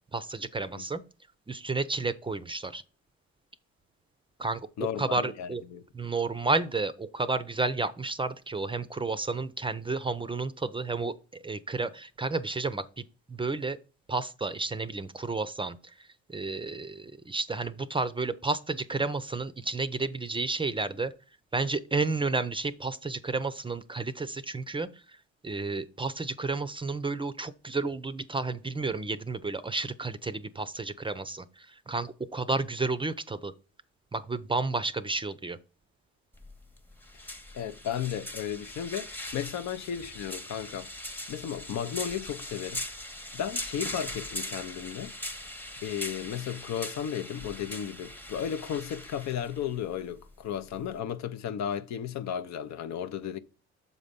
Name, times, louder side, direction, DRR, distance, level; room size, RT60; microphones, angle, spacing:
voice 1, 0.1-1.0 1.5-2.8 4.4-4.7 5.0-5.6 5.9-11.1 11.4-13.0 13.3-13.8 14.1-15.8 16.3-21.1 21.5-24.9 25.4-33.5 34.1-35.6, right 3 dB, 15° right, 0.5 m, -31 dB
voice 2, 4.8-5.8 37.5-40.9 41.3-42.8 43.3-45.1 45.8-53.4, left 9 dB, 60° left, 0.6 m, -34 dB
sound 1, 36.3-51.0, left 1 dB, 5° left, 0.9 m, -41 dB
7.1 x 4.1 x 5.1 m
supercardioid pair, 70°, 31 cm